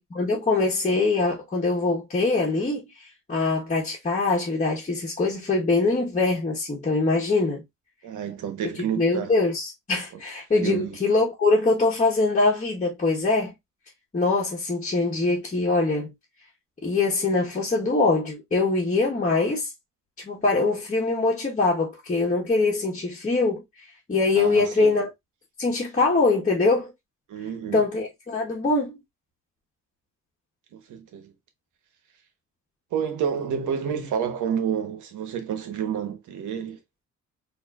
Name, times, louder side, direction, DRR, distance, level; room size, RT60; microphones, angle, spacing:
voice 1, 0.0-7.6 9.0-13.5 14.1-16.1 16.8-19.7 20.2-23.6 24.1-25.1 25.6-26.9 27.7-29.0, left 3 dB, 25° left, 1.3 m, -23 dB
voice 2, 8.0-9.3 10.5-11.0 24.4-25.0 27.3-27.8 30.7-31.3 32.9-36.8, right 8 dB, 75° right, 1.2 m, -29 dB
4.4 x 2.9 x 2.4 m
cardioid pair, 90°, 30 cm